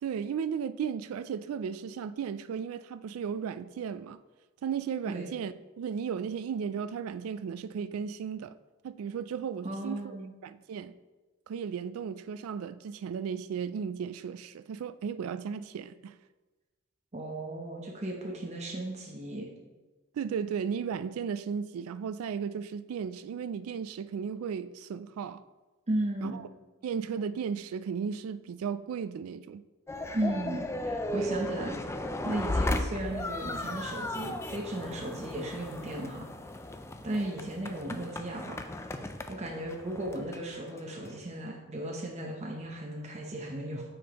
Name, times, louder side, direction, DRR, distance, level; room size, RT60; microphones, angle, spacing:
voice 1, 0.0-4.2 4.6-8.5 8.8-10.0 10.4-10.9 11.5-16.2 20.1-25.4 26.2-26.4 26.8-29.6 31.1-31.3, right 7 dB, 80° right, 0.3 m, -35 dB
voice 2, 9.6-10.3 17.1-19.5 25.9-26.4 30.1-31.8 32.2-36.3 37.0-38.6 39.3-43.8, right 1 dB, 30° right, 0.8 m, -35 dB
sound 1, 29.9-41.2, left 1 dB, 15° left, 0.3 m, -36 dB
8.7 x 5.1 x 3.0 m
head